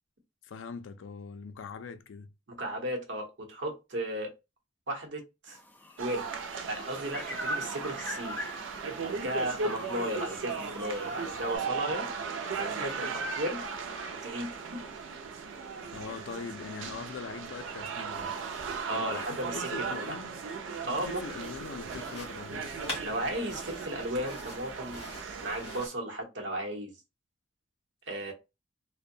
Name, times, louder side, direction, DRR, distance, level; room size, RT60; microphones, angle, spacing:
voice 1, 0.4-2.3 15.9-18.3 18.9-20.4 20.8-22.8, left 5 dB, 80° left, 0.4 m, -42 dB
voice 2, 2.5-4.3 4.9-5.6 6.0-6.3 6.6-8.5 9.0-12.1 12.6-13.6 14.2-14.5 18.9-20.2 20.9-21.2 23.0-25.1 25.4-26.9 28.1-28.3, right 1 dB, 70° right, 0.8 m, -35 dB
sound 1, 5.5-11.6, equal, 10° left, 0.4 m, -42 dB
sound 2, 6.0-25.9, right 5 dB, 85° right, 0.4 m, -37 dB
sound 3, 20.9-25.9, left 1 dB, 30° left, 1.2 m, -45 dB
2.6 x 2.1 x 2.6 m
head